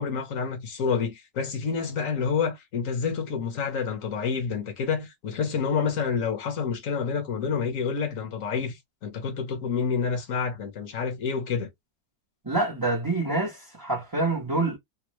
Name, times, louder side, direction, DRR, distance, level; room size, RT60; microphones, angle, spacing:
voice 1, 0.0-11.7, left 6 dB, 50° left, 1.3 m, -28 dB
voice 2, 12.4-14.8, right 2 dB, 20° right, 0.7 m, -26 dB
3.5 x 2.3 x 3.1 m
omnidirectional pair, 2.0 m